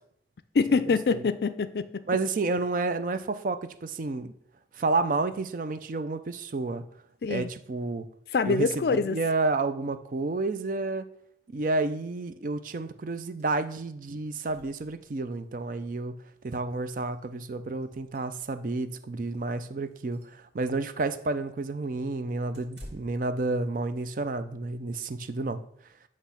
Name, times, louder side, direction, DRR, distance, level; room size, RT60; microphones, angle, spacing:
voice 1, 0.5-2.0 7.2-7.5 8.3-9.2, left 4 dB, 60° left, 0.4 m, -25 dB
voice 2, 2.1-4.3 4.7-6.8 7.3-8.1 8.4-11.0 11.5-16.1 16.4-25.6, right 3 dB, 50° right, 0.4 m, -30 dB
sound 1, 13.4-13.6 13.8-13.9 14.1-15.4 16.7-16.8 17.1-17.2 17.7-18.7 19.2-19.4 19.9-20.4 22.5-23.4, equal, 75° right, 1.9 m, -51 dB
8.2 x 3.1 x 5.7 m
head